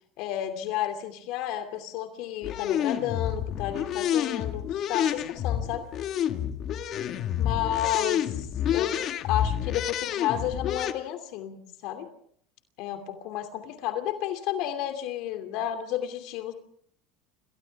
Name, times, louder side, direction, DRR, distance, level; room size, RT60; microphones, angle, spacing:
voice 1, 0.2-5.9 7.4-12.1 12.8-16.5, left 11 dB, 65° left, 7 dB, 2.7 m, -32 dB
sound 1, 2.4-10.9, left 10 dB, 45° left, 1.7 m, -29 dB
29.0 x 26.5 x 3.6 m, 0.65 s
supercardioid pair, 125°, 0 cm